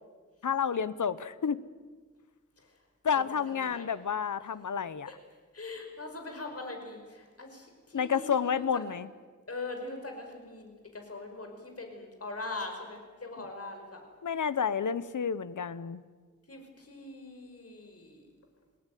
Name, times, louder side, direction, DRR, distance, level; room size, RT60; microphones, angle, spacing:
voice 1, 0.4-1.6 3.0-5.1 7.9-9.1 14.2-16.0, left 7 dB, 75° left, 15 dB, 1.0 m, -30 dB
voice 2, 3.2-3.9 5.1-5.2 5.5-8.6 9.5-14.0 16.5-18.2, left 2 dB, 50° left, 4 dB, 5.4 m, -42 dB
29.0 x 18.5 x 9.3 m, 1.5 s
wide cardioid pair, 120°, 31 cm